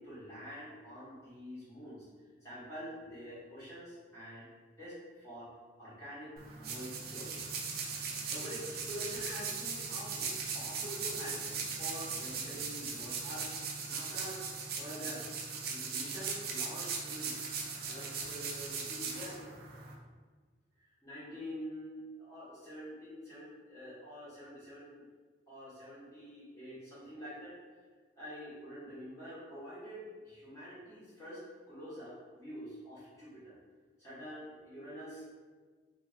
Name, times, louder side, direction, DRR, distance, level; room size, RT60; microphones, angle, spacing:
voice 1, 0.0-2.1 2.4-4.5 4.8-5.5 5.8-7.9 8.3-13.5 13.9-14.5 14.8-15.3 15.7-17.4 17.8-19.4 20.8-25.0 25.5-27.5 28.2-31.4 31.7-33.6 34.0-35.3, equal, 15° left, -11 dB, 0.9 m, -46 dB
sound 1, 6.4-19.9, right 5 dB, 50° right, 0.4 m, -39 dB
3.1 x 2.4 x 2.5 m, 1.5 s
head